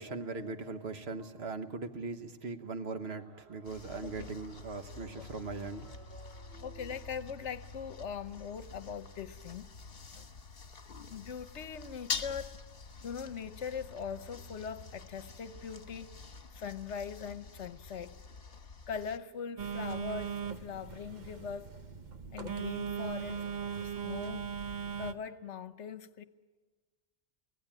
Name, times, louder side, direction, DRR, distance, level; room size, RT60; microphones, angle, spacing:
voice 1, 0.0-6.8, right 3 dB, 60° right, 1.4 m, -40 dB
sound 1, 3.6-19.2, left 5 dB, 50° left, 1.5 m, -46 dB
voice 2, 6.6-9.7 10.2-10.3 11.1-12.5 13.0-16.1 16.5-18.2 18.9-21.7 22.3-23.5 23.8-24.5 25.0-26.2, left 7 dB, 70° left, 1.2 m, -41 dB
Telephone, 19.6-25.1, right 7 dB, 40° right, 1.0 m, -38 dB
24.5 x 17.5 x 8.8 m
omnidirectional pair, 1.2 m